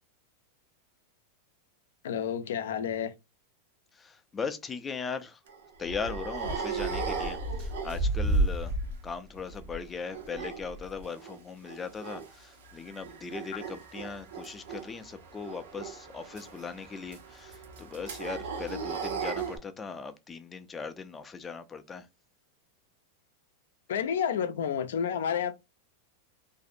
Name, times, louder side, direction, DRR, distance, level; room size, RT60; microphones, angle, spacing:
voice 1, 2.0-3.1 23.9-25.5, left 8 dB, 85° left, 0.4 m, -30 dB
voice 2, 3.9-5.4 5.8-8.7 9.0-22.1, left 5 dB, 15° left, 0.4 m, -39 dB
sound 1, 5.5-9.1 9.4-11.4 11.6-12.3 12.6-19.6, right 3 dB, 80° right, 0.7 m, -34 dB
2.6 x 2.0 x 2.5 m
supercardioid pair, 135°, 0 cm